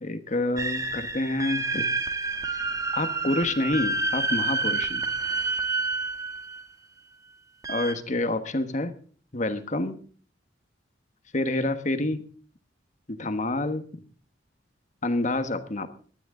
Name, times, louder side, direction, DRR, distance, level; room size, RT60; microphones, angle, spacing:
voice 1, 0.0-1.9 2.9-5.0 7.7-8.9 9.3-10.0 11.3-12.2 13.1-13.9 15.0-15.9, left 2 dB, 40° left, 10 dB, 1.3 m, -28 dB
sound 1, 0.6-6.6 7.6-7.9, right 3 dB, 20° right, 1.3 m, -29 dB
19.0 x 12.5 x 3.8 m, 0.43 s
head